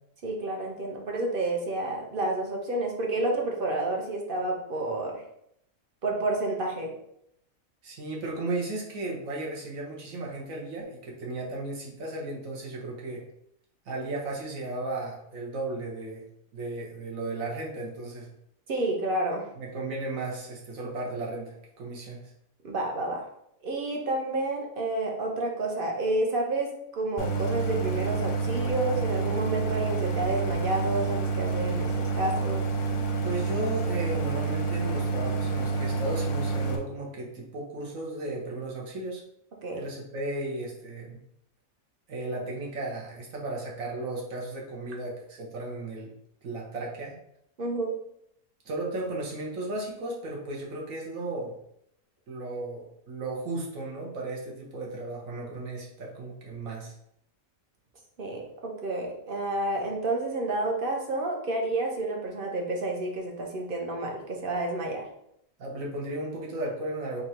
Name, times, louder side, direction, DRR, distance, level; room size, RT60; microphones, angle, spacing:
voice 1, 0.2-5.2 6.0-6.9 18.7-19.5 22.6-23.2 23.6-32.7 39.6-39.8 47.6-47.9 58.2-65.0, right 2 dB, 45° right, 0 dB, 0.9 m, -30 dB
voice 2, 7.8-13.2 13.8-16.2 16.5-18.3 19.6-22.3 33.2-39.2 39.7-41.2 42.1-46.1 46.4-47.1 48.6-51.6 52.3-56.9 65.6-67.2, right 2 dB, 75° right, -3 dB, 1.5 m, -35 dB
Idling, 27.2-36.8, right 4 dB, 55° left, 0.7 m, -28 dB
3.7 x 2.8 x 4.3 m, 0.73 s
omnidirectional pair, 1.4 m